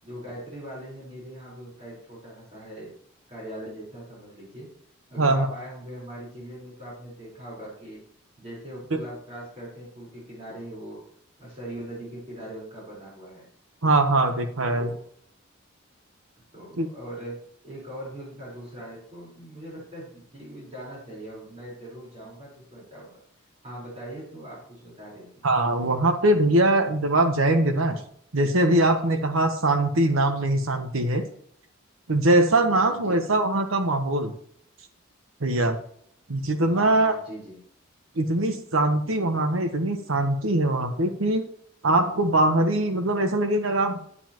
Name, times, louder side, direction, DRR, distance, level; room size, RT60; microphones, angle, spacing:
voice 1, 0.0-2.9 3.3-4.7 5.1-8.0 8.4-11.0 11.4-13.5 14.7-15.0 16.5-23.2 23.6-25.4 32.8-33.4 36.6-37.6, right 1 dB, 30° right, -6 dB, 4.4 m, -41 dB
voice 2, 5.2-5.5 13.8-14.9 16.8-16.9 25.4-28.0 28.3-31.2 32.1-34.3 35.4-35.8 36.3-37.1 38.2-41.5 41.8-44.0, right 2 dB, 75° right, 7 dB, 1.1 m, -22 dB
9.8 x 9.4 x 3.0 m, 0.63 s
head